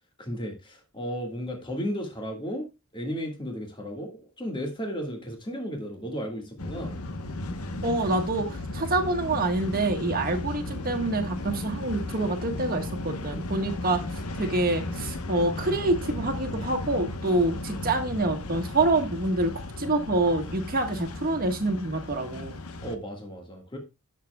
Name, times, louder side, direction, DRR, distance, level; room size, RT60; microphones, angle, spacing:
voice 1, 0.2-2.7 2.9-7.0 22.8-23.8, equal, 20° left, 2 dB, 1.7 m, -34 dB
sound 1, 6.6-23.0, left 2 dB, 90° left, 1.1 m, -35 dB
voice 2, 7.8-19.5 19.8-22.6, right 2 dB, 40° right, 5 dB, 1.4 m, -26 dB
16.0 x 6.7 x 2.3 m, 0.25 s
head